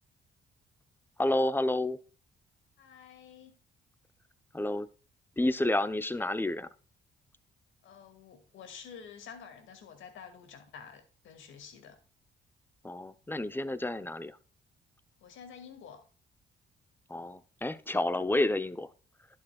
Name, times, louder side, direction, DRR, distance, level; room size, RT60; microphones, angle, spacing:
voice 1, 1.2-2.0 4.5-4.9 5.4-6.7 12.8-14.3 17.1-18.9, left 1 dB, 10° left, 0.7 m, -30 dB
voice 2, 2.8-3.6 7.8-12.0 13.8-14.0 15.2-16.1, left 7 dB, 80° left, 2.2 m, -49 dB
11.5 x 7.8 x 2.3 m
cardioid pair, 90°, 20 cm